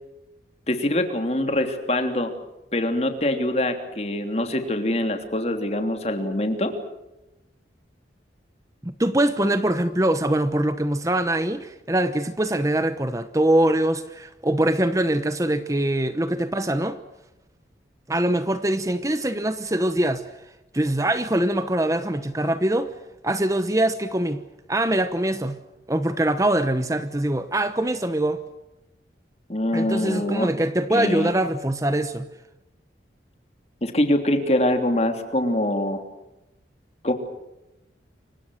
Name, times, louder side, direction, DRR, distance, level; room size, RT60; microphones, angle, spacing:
voice 1, 0.7-2.3 2.7-6.7 29.5-30.5 30.9-31.3 33.8-36.0 37.0-37.1, left 1 dB, 35° left, 6 dB, 3.2 m, -24 dB
voice 2, 8.8-17.0 18.1-20.2 20.7-22.9 23.2-24.4 24.7-25.5 25.9-28.4 29.7-32.3, right 1 dB, 20° right, 11 dB, 1.0 m, -23 dB
29.5 x 24.5 x 6.5 m, 0.94 s
head